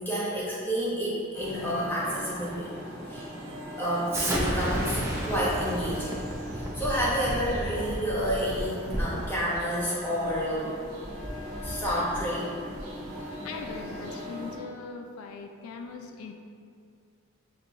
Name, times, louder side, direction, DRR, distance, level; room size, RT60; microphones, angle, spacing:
voice 1, 0.0-2.7 3.1-3.3 3.8-6.2 6.5-10.8 11.6-12.5 13.1-13.3, equal, 10° left, -7 dB, 0.9 m, -30 dB
sound 1, 1.3-14.6, equal, 70° right, 1.1 m, -40 dB
Explosion, 4.1-9.2, right 1 dB, 10° right, 0.4 m, -31 dB
voice 2, 13.3-16.3, left 4 dB, 75° left, 4 dB, 0.3 m, -40 dB
6.8 x 2.6 x 2.7 m, 2.3 s
head